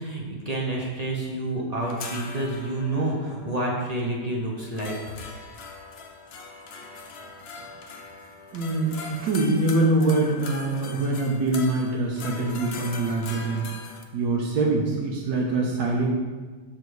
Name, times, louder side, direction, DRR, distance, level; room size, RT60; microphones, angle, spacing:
voice 1, 0.0-5.1, right 1 dB, 40° right, -2 dB, 0.6 m, -29 dB
sound 1, 1.8-14.0, left 4 dB, 60° left, 0.6 m, -41 dB
voice 2, 8.5-13.6 14.1-16.1, right 2 dB, 85° right, -3 dB, 1.5 m, -24 dB
6.6 x 4.0 x 4.6 m, 1.4 s
omnidirectional pair, 1.8 m